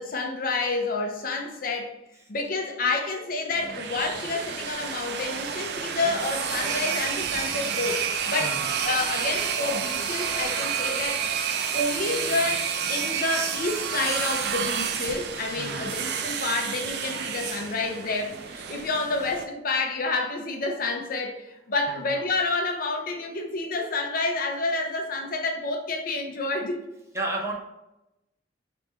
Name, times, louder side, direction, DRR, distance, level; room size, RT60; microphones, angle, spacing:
voice 1, 0.0-1.9 2.3-8.6 8.8-11.2 11.7-26.8, left 3 dB, 50° left, 0.6 m, -29 dB
sound 1, 3.5-19.4, right 7 dB, 60° right, 0.4 m, -30 dB
voice 2, 15.6-15.9 21.9-22.2 27.1-27.5, right 2 dB, 15° right, 0.6 m, -32 dB
3.4 x 3.1 x 4.2 m
head